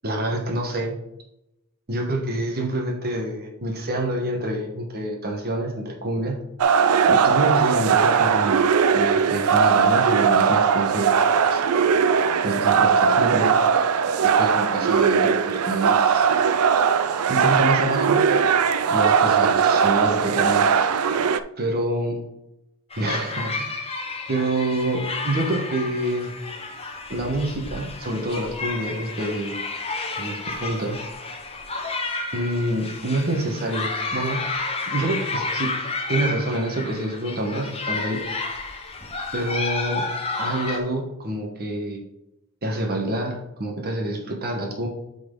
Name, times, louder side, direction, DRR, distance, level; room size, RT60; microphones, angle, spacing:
voice 1, 0.0-0.9 1.9-6.3 7.1-8.6 8.9-11.1 11.5-11.6 12.4-13.5 14.2-16.3 17.3-18.3 18.9-20.7 21.6-22.2 23.0-23.9 24.3-26.4 27.1-29.5 30.2-31.0 32.3-34.4 34.8-35.8 36.1-38.2 39.3-40.1 40.4-42.0 42.6-44.9, right 1 dB, 45° right, 1 dB, 1.2 m, -27 dB
sound 1, 6.6-21.4, right 6 dB, 75° right, 0.4 m, -19 dB
sound 2, 22.9-40.8, left 3 dB, 25° left, 0.9 m, -31 dB
8.4 x 4.0 x 3.8 m, 0.86 s
head